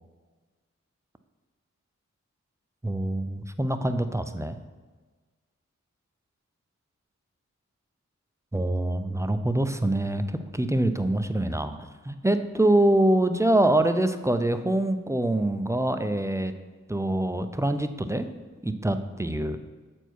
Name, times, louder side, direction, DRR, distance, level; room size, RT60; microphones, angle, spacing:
voice 1, 2.8-4.6 8.5-11.8 12.0-16.5 16.9-18.3 18.6-19.6, right 1 dB, 10° right, 9 dB, 0.5 m, -25 dB
8.0 x 4.5 x 4.5 m, 1.3 s
cardioid pair, 50°, 31 cm